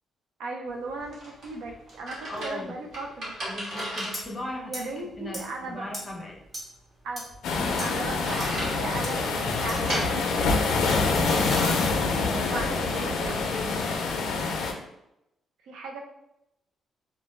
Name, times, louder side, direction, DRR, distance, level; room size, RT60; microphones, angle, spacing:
voice 1, 0.4-3.3 4.7-5.9 7.0-7.3 7.8-11.9 12.4-13.3 15.6-16.0, right 3 dB, 90° right, 2 dB, 0.4 m, -37 dB
sound 1, 0.7-11.5, right 1 dB, 60° right, 1.0 m, -39 dB
voice 2, 2.2-2.8 3.5-6.4 12.1-13.9, left 1 dB, 25° left, 0 dB, 0.5 m, -38 dB
sound 2, 4.1-4.2 4.7-4.8 5.3-5.4 5.9-6.0 6.5-6.6 7.2-7.3 7.8-7.9 8.4-8.5 9.0-9.1 9.7-9.8 10.9-11.7, equal, 15° right, 0.9 m, -36 dB
sound 3, 7.4-14.7, left 4 dB, 85° left, 0.4 m, -26 dB
2.2 x 2.0 x 3.0 m, 0.84 s
cardioid pair, 125°, 0 cm